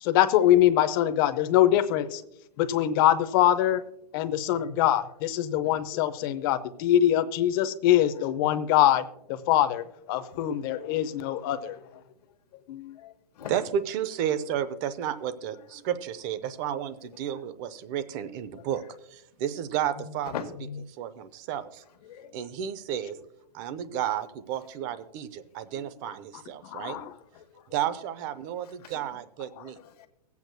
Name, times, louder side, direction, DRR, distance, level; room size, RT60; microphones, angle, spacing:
voice 1, 0.0-2.2 2.6-3.8 4.1-11.8 12.7-13.0 26.6-27.1 29.6-29.7, left 12 dB, 35° left, 0.7 m, -23 dB
voice 2, 13.0-13.5 15.8-15.9 18.5-18.7 20.3-20.5 22.0-22.3 25.7-25.9 26.8-27.1 27.3-27.7 28.8-28.9 29.8-30.1, left 8 dB, 75° left, 1.3 m, -41 dB
voice 3, 13.5-18.8 19.1-20.3 21.0-21.8 22.3-23.2 23.5-27.0 27.7-29.8, right 10 dB, 30° right, 0.6 m, -32 dB
24.0 x 8.2 x 2.2 m
hypercardioid pair, 160°, 20 cm